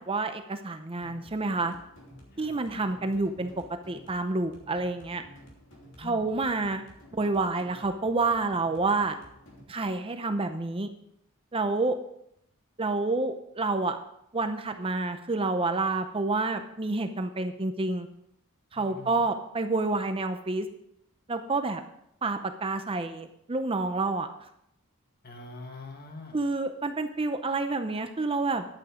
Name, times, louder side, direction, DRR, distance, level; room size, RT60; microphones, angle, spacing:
voice 1, 0.0-1.7 2.4-3.5 3.9-5.2 6.0-6.8 7.1-9.1 9.7-10.9 11.5-12.0 12.8-14.0 14.3-18.1 18.7-20.7 21.3-21.8 22.2-24.3 26.3-28.7, right 3 dB, 25° right, 8 dB, 0.6 m, -28 dB
sound 1, 1.0-9.6, equal, 60° left, 3.1 m, -53 dB
voice 2, 18.7-19.2 25.2-26.4, left 2 dB, 45° left, 3 dB, 1.7 m, -44 dB
11.0 x 8.8 x 5.0 m, 0.76 s
head